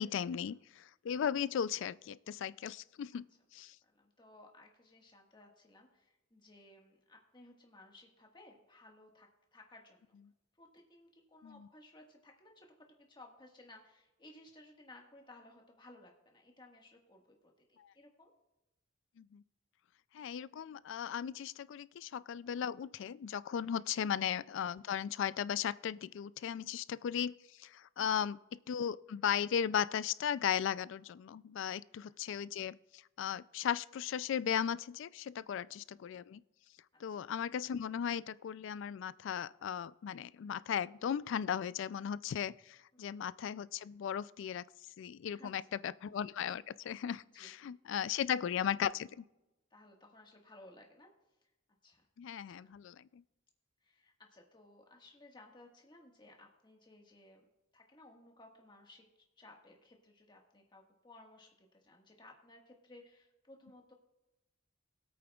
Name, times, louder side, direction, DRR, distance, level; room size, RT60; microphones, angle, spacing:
voice 1, 0.0-3.2 3.5-3.8 11.4-11.7 17.8-17.9 19.2-19.4 20.1-28.4 28.7-36.4 37.0-44.6 45.0-49.2 52.2-53.2, left 8 dB, 60° left, 18 dB, 0.3 m, -37 dB
voice 2, 3.8-10.2 10.6-18.3 23.9-24.0 31.7-32.1 35.4-35.6 37.1-37.2 42.9-43.1 45.2-45.7 47.3-48.1 49.7-51.1 51.8-52.0 52.6-52.7 53.8-57.5 57.7-59.1 59.4-63.9, left 2 dB, 20° left, 1 dB, 1.5 m, -59 dB
23.0 x 8.6 x 2.3 m, 0.99 s
head